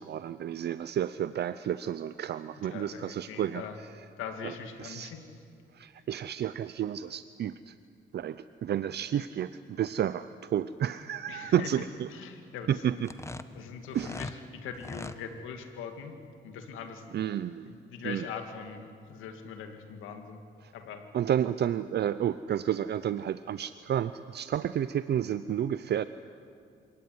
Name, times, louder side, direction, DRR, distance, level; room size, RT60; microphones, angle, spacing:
voice 1, 0.0-3.9 4.4-4.5 4.8-5.1 5.7-7.7 8.1-12.1 12.7-13.1 13.9-14.3 17.1-17.7 18.0-18.3 20.6-20.7 21.1-26.1, right 10 dB, 55° right, 14 dB, 0.6 m, -31 dB
voice 2, 2.6-3.8 4.2-5.2 11.3-13.0 13.5-16.1 16.4-17.0 17.7-20.4 20.7-21.1, left 6 dB, 90° left, 6 dB, 2.5 m, -41 dB
sound 1, 13.0-14.4 14.7-15.2, left 2 dB, 15° left, 1.1 m, -40 dB
26.5 x 18.0 x 9.5 m, 2.3 s
cardioid pair, 90°, 20 cm